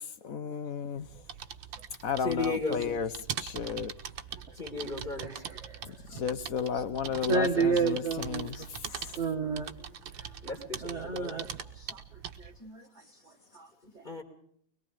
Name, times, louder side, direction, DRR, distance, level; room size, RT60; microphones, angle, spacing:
voice 1, 0.2-1.1 2.0-3.1 3.4-3.9 6.1-8.5 8.9-9.1, left 7 dB, 50° left, 13 dB, 1.2 m, -33 dB
sound 1, 1.0-12.6, right 8 dB, 75° right, 1.8 m, -42 dB
voice 2, 2.2-2.8 4.6-5.4 10.4-11.3 14.0-14.2, left 3 dB, 25° left, 2 dB, 2.7 m, -34 dB
voice 3, 5.2-5.8 6.7-6.8 7.3-8.7 9.1-9.7 10.2-10.3 10.8-12.0 12.4-12.9 13.5-13.7, right 5 dB, 40° right, 1 dB, 1.7 m, -31 dB
23.5 x 22.0 x 5.1 m, 0.63 s
omnidirectional pair, 2.2 m